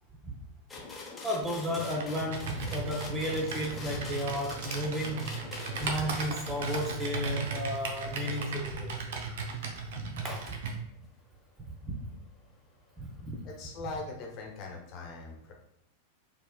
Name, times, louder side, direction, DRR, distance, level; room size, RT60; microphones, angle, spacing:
sound 1, 0.7-9.3 10.5-10.6, left 3 dB, 15° left, 0.9 m, -45 dB
voice 1, 1.2-5.4 5.8-9.0 10.0-10.6 11.7-12.0 13.0-13.4, equal, 20° right, 2 dB, 0.7 m, -33 dB
Computer keyboard, 1.7-10.8, right 4 dB, 55° right, 0.6 m, -37 dB
voice 2, 13.4-15.5, left 3 dB, 40° left, 0 dB, 1.0 m, -41 dB
4.4 x 3.1 x 2.3 m, 0.76 s
figure-of-eight pair, 90°, 0 cm